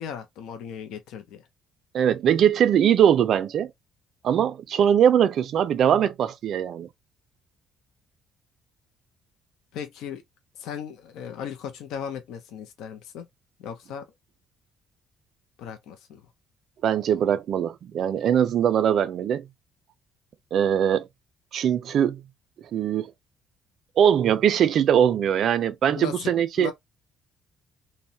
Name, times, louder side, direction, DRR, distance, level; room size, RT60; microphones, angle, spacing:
voice 1, 0.0-1.4 9.7-10.2 10.6-13.3 13.6-14.1 15.6-16.2 25.9-26.3 26.6-26.7, left 8 dB, 80° left, 0.5 m, -36 dB
voice 2, 1.9-3.7 4.2-6.9 16.8-19.5 20.5-21.1 21.5-22.2 22.7-23.1 24.0-26.7, right 9 dB, 55° right, 0.4 m, -21 dB
2.6 x 2.1 x 2.7 m
cardioid pair, 130°, 0 cm